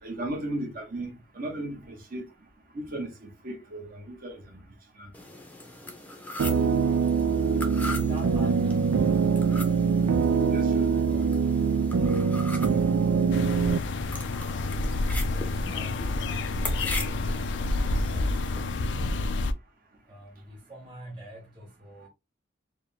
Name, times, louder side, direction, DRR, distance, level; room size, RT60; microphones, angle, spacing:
voice 1, 0.0-2.2 2.7-4.7 5.0-5.1 10.4-11.3, right 1 dB, 45° right, 1.0 m, -36 dB
sound 1, 5.1-18.6, left 2 dB, 10° left, 0.6 m, -41 dB
sound 2, 6.4-13.8, right 5 dB, 90° right, 0.3 m, -23 dB
voice 2, 6.7-7.2 7.7-9.0 14.9-17.7 18.0-19.4 20.0-22.1, equal, 25° right, 1.1 m, -45 dB
sound 3, 13.3-19.5, left 2 dB, 65° left, 0.4 m, -29 dB
4.4 x 2.2 x 3.4 m
head